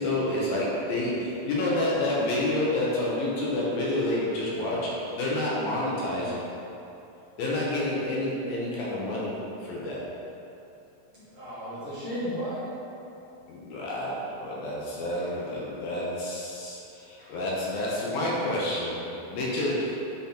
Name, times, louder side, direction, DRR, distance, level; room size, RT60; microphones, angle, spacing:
voice 1, 0.0-6.4 7.4-10.0 13.5-20.0, left 1 dB, 70° left, -5 dB, 2.6 m, -29 dB
voice 2, 11.1-12.7, equal, 50° right, -12 dB, 2.3 m, -34 dB
9.4 x 4.2 x 4.3 m, 2.9 s
omnidirectional pair, 4.6 m